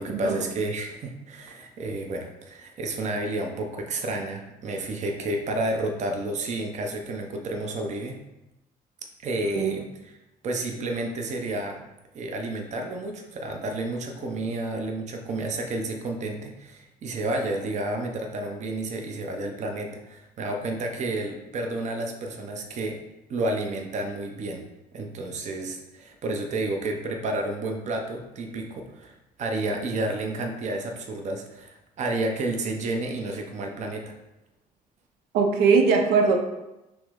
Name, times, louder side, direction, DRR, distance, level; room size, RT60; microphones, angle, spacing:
voice 1, 0.0-8.2 9.2-10.1 10.4-11.8 12.1-23.0 23.3-24.6 24.9-34.1, right 2 dB, 45° right, 3 dB, 0.7 m, -31 dB
voice 2, 35.3-36.4, right 5 dB, 85° right, 4 dB, 0.7 m, -20 dB
5.8 x 2.1 x 3.7 m, 0.96 s
cardioid pair, 95°, 16 cm